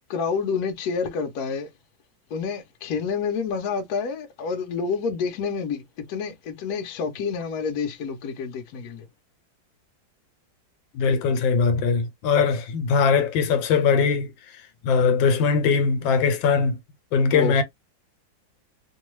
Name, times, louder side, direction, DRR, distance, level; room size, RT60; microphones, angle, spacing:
voice 1, 0.1-1.7 2.3-5.8 6.1-9.0 17.3-17.5, left 5 dB, 65° left, 1.1 m, -28 dB
voice 2, 10.9-16.8 17.1-17.6, left 5 dB, 85° left, 1.4 m, -21 dB
3.0 x 2.3 x 3.0 m
omnidirectional pair, 2.0 m